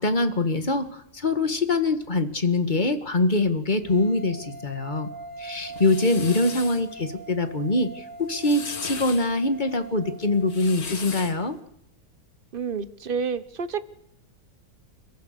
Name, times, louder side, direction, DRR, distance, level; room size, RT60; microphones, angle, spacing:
voice 1, 0.0-5.1 5.4-11.6, left 2 dB, 30° left, 9 dB, 1.8 m, -24 dB
sound 1, 3.8-11.0, right 2 dB, 5° left, 2.8 m, -42 dB
sound 2, 5.5-6.8 8.2-9.3 10.3-11.4, left 5 dB, 65° left, 2.4 m, -37 dB
voice 2, 12.5-13.9, right 5 dB, 40° right, 14 dB, 1.0 m, -29 dB
29.5 x 14.5 x 6.7 m, 0.77 s
omnidirectional pair, 1.7 m